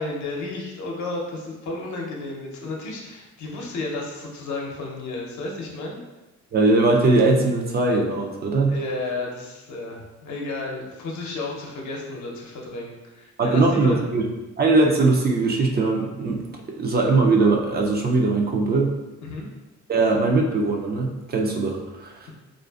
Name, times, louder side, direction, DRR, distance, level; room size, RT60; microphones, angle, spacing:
voice 1, 0.0-6.0 8.7-14.0 19.2-19.5, left 2 dB, 70° left, -1 dB, 0.7 m, -32 dB
voice 2, 6.5-8.7 13.4-14.2 14.6-18.9 19.9-22.3, right 3 dB, 35° right, 0 dB, 0.4 m, -20 dB
2.5 x 2.4 x 2.3 m, 1.1 s
cardioid pair, 90°, 30 cm